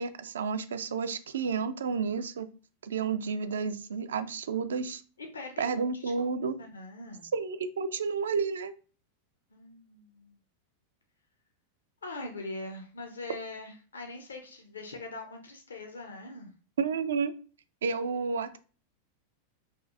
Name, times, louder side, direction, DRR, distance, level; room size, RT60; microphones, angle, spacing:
voice 1, 0.0-2.5 2.8-5.0 5.6-6.5 7.3-8.7 16.8-17.3 17.8-18.6, right 5 dB, 65° right, 11 dB, 0.3 m, -31 dB
voice 2, 5.2-6.1 6.6-7.3 9.5-10.4 12.0-16.5, left 2 dB, 70° left, 4 dB, 0.5 m, -42 dB
4.2 x 2.6 x 2.4 m, 0.38 s
figure-of-eight pair, 90°, 0 cm